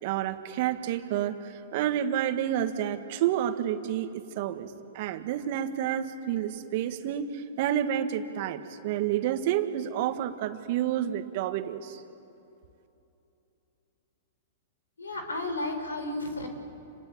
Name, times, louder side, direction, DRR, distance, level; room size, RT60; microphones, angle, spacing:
voice 1, 0.0-4.7 4.9-12.0, right 11 dB, 55° right, 8 dB, 1.9 m, -29 dB
voice 2, 15.0-16.5, left 2 dB, 90° left, 6 dB, 5.0 m, -33 dB
28.0 x 20.5 x 8.9 m, 2.8 s
hypercardioid pair, 110°, 0 cm